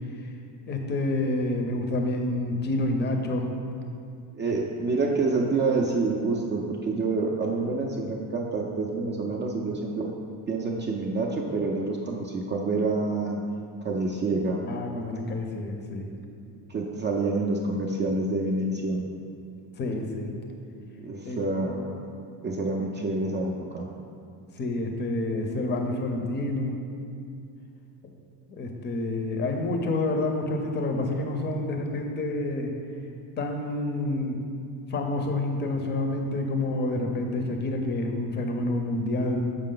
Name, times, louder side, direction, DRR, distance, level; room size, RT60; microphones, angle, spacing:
voice 1, 0.7-3.5 4.4-4.5 14.6-16.1 19.8-20.3 21.2-21.4 24.6-26.7 28.5-32.7 33.4-34.4 34.9-39.4, left 2 dB, 25° left, 3 dB, 0.6 m, -28 dB
voice 2, 4.3-10.1 10.5-13.4 13.8-14.6 16.7-19.0 20.9-22.0 22.4-23.8, right 3 dB, 30° right, -1 dB, 0.4 m, -27 dB
6.5 x 4.7 x 3.8 m, 2.5 s
cardioid pair, 140°, 41 cm